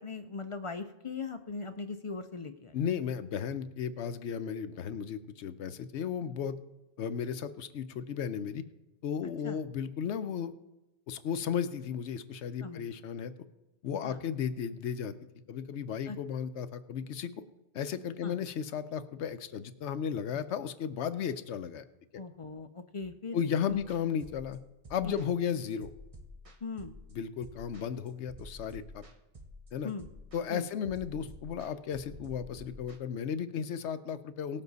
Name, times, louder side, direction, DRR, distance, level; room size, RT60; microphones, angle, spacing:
voice 1, 0.0-2.8 9.4-9.6 12.6-12.8 14.0-14.2 16.1-16.2 18.2-18.4 22.2-23.4 23.7-23.8 25.1-25.3 26.6-26.9 29.8-30.1 30.5-30.7, left 4 dB, 50° left, 8 dB, 0.4 m, -39 dB
voice 2, 2.7-6.6 7.0-8.6 9.0-10.5 11.1-13.3 13.8-15.1 15.5-17.3 17.7-21.8 23.3-24.6 24.9-25.9 27.1-29.0 29.7-29.9 30.3-34.6, left 8 dB, 75° left, 12 dB, 0.9 m, -34 dB
sound 1, 23.7-33.0, left 1 dB, 30° right, 1.0 m, -50 dB
18.0 x 7.3 x 4.0 m, 1.0 s
omnidirectional pair, 1.2 m